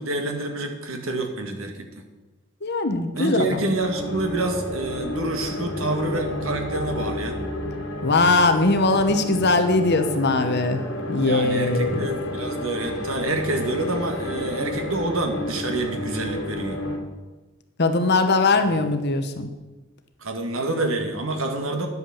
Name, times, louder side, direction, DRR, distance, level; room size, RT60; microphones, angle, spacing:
voice 1, 0.0-1.9 3.1-7.4 11.2-16.8 20.2-21.9, right 2 dB, 80° right, 4 dB, 1.9 m, -27 dB
voice 2, 2.6-3.6 8.0-12.1 17.8-19.5, left 3 dB, 55° left, 7 dB, 1.1 m, -21 dB
sound 1, 3.8-17.0, left 1 dB, 70° left, 2.6 m, -31 dB
10.5 x 8.2 x 7.2 m, 1.2 s
head